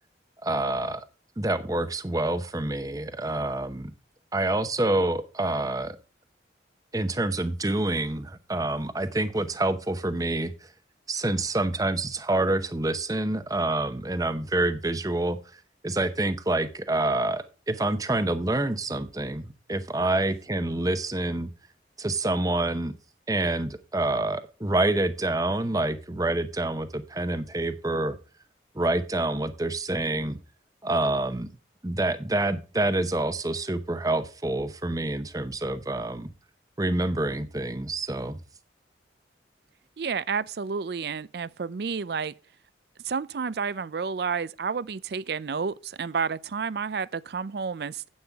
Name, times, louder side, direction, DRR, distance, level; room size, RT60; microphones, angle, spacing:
voice 1, 0.4-1.0 1.4-3.9 4.3-6.0 6.9-10.5 11.1-15.4 15.8-21.5 22.0-22.9 23.3-28.1 28.7-30.4 30.8-31.5 31.8-36.3 36.8-38.4, right 2 dB, 20° right, 0.8 m, -27 dB
voice 2, 40.0-42.3 43.0-48.1, right 5 dB, 60° right, 0.4 m, -30 dB
9.6 x 8.6 x 3.5 m
head